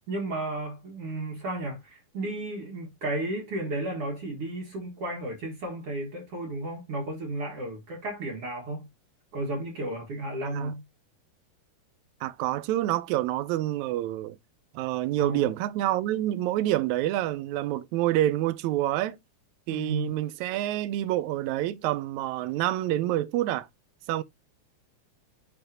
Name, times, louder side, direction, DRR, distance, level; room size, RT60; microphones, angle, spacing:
voice 1, 0.1-8.9 9.3-10.8 15.2-15.5 19.7-20.1, right 2 dB, 55° right, 2.4 m, -33 dB
voice 2, 12.2-14.4 14.7-19.2 19.7-23.7 24.1-24.2, right 14 dB, 80° right, 1.9 m, -27 dB
10.5 x 4.0 x 2.7 m
omnidirectional pair, 3.5 m